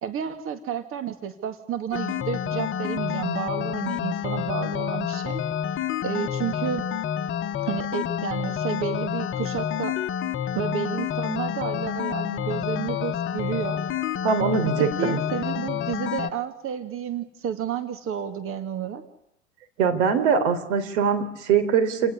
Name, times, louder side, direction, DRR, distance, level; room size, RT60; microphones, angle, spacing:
voice 1, 0.0-5.4 6.0-6.8 7.6-10.0 10.5-13.8 14.8-19.0, right 8 dB, 35° right, 10 dB, 2.3 m, -31 dB
sound 1, 1.9-16.3, left 9 dB, 30° left, 1.5 m, -29 dB
voice 2, 14.2-15.2 19.8-22.1, right 6 dB, 60° right, 8 dB, 3.8 m, -22 dB
29.0 x 18.5 x 9.8 m, 0.80 s
figure-of-eight pair, 85°, 38 cm